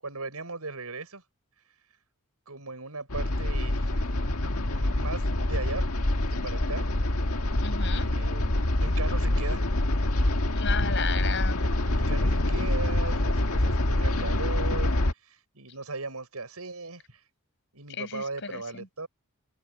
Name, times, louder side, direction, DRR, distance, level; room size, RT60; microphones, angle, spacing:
voice 1, 0.0-1.2 2.5-4.0 4.7-5.8 6.3-6.9 7.9-9.7 11.9-14.9 15.2-17.2 17.7-19.1, right 3 dB, 80° right, 6.7 m, -38 dB
sound 1, 3.1-15.1, left 1 dB, 75° left, 1.7 m, -26 dB
voice 2, 7.6-8.1 10.5-11.7 18.0-18.9, left 5 dB, 55° left, 5.4 m, -34 dB
head